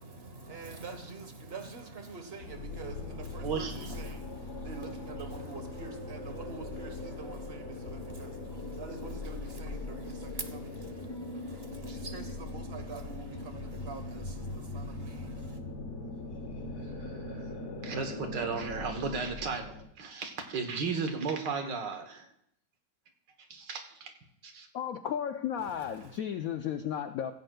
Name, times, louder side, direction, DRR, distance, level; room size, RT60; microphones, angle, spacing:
voice 1, 0.0-15.6 25.6-26.2, right 4 dB, 35° right, 1.3 m, -45 dB
sound 1, 2.4-19.8, left 2 dB, 45° left, 1.3 m, -40 dB
voice 2, 3.4-3.9 17.1-17.2 17.8-22.3 23.5-24.1 24.4-24.7, right 5 dB, 70° right, 1.8 m, -35 dB
voice 3, 24.7-27.3, left 9 dB, 75° left, 0.8 m, -34 dB
16.5 x 15.5 x 2.3 m
omnidirectional pair, 2.0 m